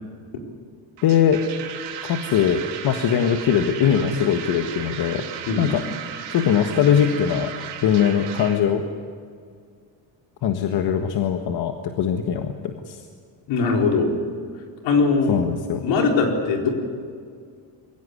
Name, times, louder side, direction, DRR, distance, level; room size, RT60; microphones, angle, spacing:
voice 1, 1.0-1.4 2.0-5.2 5.6-5.8 6.3-7.5 7.8-8.8 10.4-13.0 15.3-15.9, left 8 dB, 65° left, 5 dB, 1.6 m, -21 dB
sound 1, 1.0-8.6, right 8 dB, 80° right, 3.1 m, -35 dB
voice 2, 13.5-14.1 14.8-15.4 15.8-16.7, left 4 dB, 80° left, 2 dB, 4.4 m, -20 dB
23.0 x 16.5 x 9.7 m, 2.1 s
cardioid pair, 110°, 42 cm